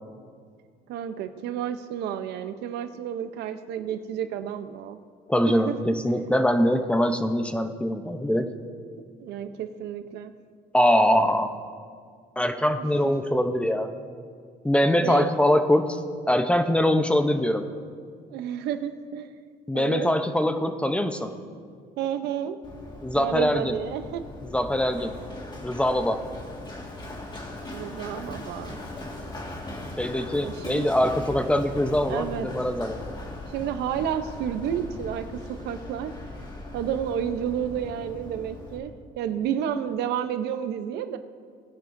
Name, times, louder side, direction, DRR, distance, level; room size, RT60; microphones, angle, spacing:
voice 1, 0.9-5.0 5.5-5.7 6.1-6.2 9.2-10.3 15.0-15.3 17.7-17.9 18.3-19.3 19.7-20.1 22.0-22.6 23.1-24.2 27.7-28.9 30.4-30.9 32.1-32.7 33.5-36.1 36.7-41.2, right 9 dB, 80° right, 10 dB, 0.7 m, -31 dB
voice 2, 5.3-8.5 10.7-11.5 12.4-13.9 14.6-16.0 16.3-17.7 19.7-21.3 23.0-23.8 24.4-25.1 25.6-26.2 30.0-33.0, left 1 dB, 5° left, 7 dB, 0.7 m, -23 dB
Run, 22.6-38.8, left 2 dB, 25° left, 1.9 m, -39 dB
19.5 x 10.5 x 2.7 m, 2.1 s
cardioid pair, 110°, 17 cm